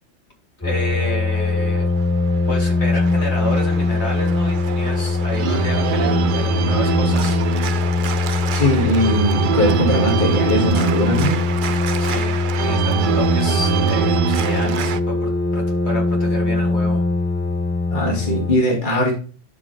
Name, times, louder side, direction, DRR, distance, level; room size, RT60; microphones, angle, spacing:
voice 1, 0.6-1.8 2.5-7.4 12.0-17.0, left 1 dB, 60° left, -1 dB, 3.4 m, -30 dB
sound 1, 0.6-18.6, left 3 dB, 15° left, 0.6 m, -21 dB
Organ, 1.8-15.0, right 9 dB, 55° right, 0.6 m, -24 dB
voice 2, 8.5-11.5 17.9-19.1, left 1 dB, 40° left, 0 dB, 2.5 m, -20 dB
11.5 x 5.1 x 3.4 m, 0.36 s
omnidirectional pair, 1.3 m